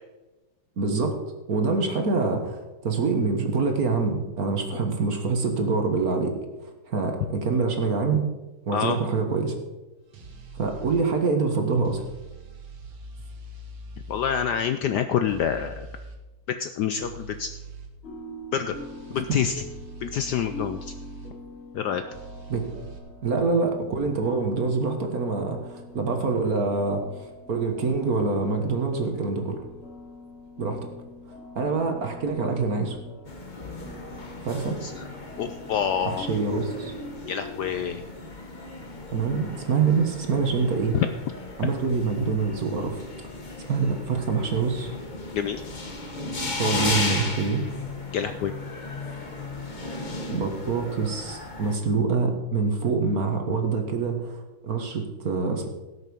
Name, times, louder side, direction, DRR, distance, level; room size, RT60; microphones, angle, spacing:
voice 1, 0.8-1.1 1.5-6.3 6.6-8.2 8.6-9.6 10.5-12.0 19.3-19.4 22.5-22.6 23.2-29.6 30.6-30.8 31.5-33.0 34.4-34.8 36.0-36.9 39.1-41.0 41.6-43.0 43.6-44.9 46.6-47.6 50.3-55.7, right 4 dB, 50° right, 4 dB, 1.7 m, -25 dB
sound 1, 10.1-11.0 11.8-14.5 15.3-16.2 17.0-17.9 18.7-21.3 22.1-23.0, right 3 dB, 75° right, 2.4 m, -42 dB
voice 2, 14.1-15.9 16.5-17.5 18.5-18.7 19.1-19.5 20.0-20.9 21.7-22.0 34.8-35.0 35.4-36.3 37.3-38.0 41.6-41.7 45.3-45.6 48.1-48.5, left 8 dB, 70° left, 9 dB, 1.0 m, -27 dB
sound 2, 18.0-37.6, left 2 dB, 90° left, 3.3 m, -43 dB
sound 3, 33.2-51.8, left 2 dB, 25° left, 1.2 m, -35 dB
17.0 x 6.6 x 5.3 m, 1.1 s
omnidirectional pair, 2.2 m